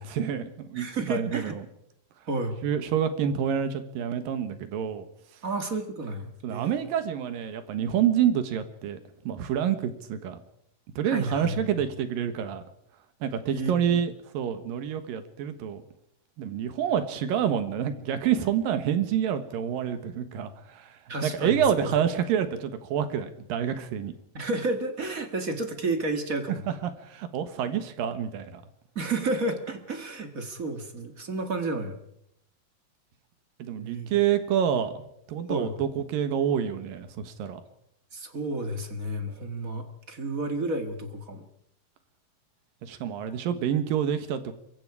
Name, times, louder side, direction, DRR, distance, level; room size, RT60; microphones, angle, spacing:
voice 1, 0.1-1.6 2.6-5.1 6.4-9.0 9.2-10.4 11.0-12.6 13.2-15.8 16.4-24.1 26.5-28.6 33.6-37.6 42.8-44.5, right 9 dB, 75° right, 10 dB, 3.2 m, -28 dB
voice 2, 0.7-1.5 2.3-2.6 5.4-6.7 11.0-11.6 13.5-14.0 21.1-21.9 24.3-26.6 28.9-32.0 33.7-34.1 35.5-35.7 38.1-41.4, right 2 dB, 35° right, 7 dB, 1.3 m, -31 dB
24.5 x 22.5 x 4.9 m, 0.76 s
omnidirectional pair, 4.1 m